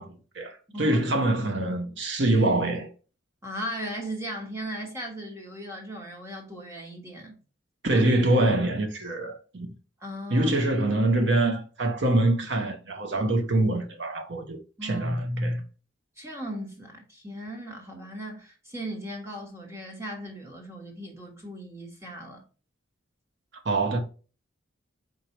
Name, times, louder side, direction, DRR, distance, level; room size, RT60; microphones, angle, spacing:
voice 1, 0.0-2.9 7.8-9.7 10.3-15.6 23.6-24.0, right 2 dB, 65° right, 0.9 m, -25 dB
voice 2, 3.4-7.4 7.9-8.0 10.0-10.5 14.8-15.1 15.4-15.5 16.2-22.4, equal, 15° right, 1.3 m, -37 dB
4.6 x 3.9 x 2.9 m
head